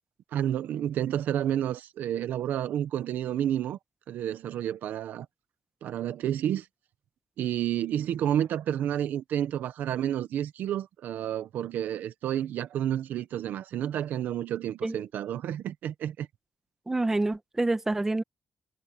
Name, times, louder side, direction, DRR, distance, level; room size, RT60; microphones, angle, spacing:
voice 1, 0.3-3.8 4.1-5.3 5.8-6.7 7.4-16.3, right 10 dB, 85° right, 1.2 m, -30 dB
voice 2, 16.9-18.2, right 2 dB, 15° right, 1.3 m, -27 dB
cardioid pair, 150°, 3 cm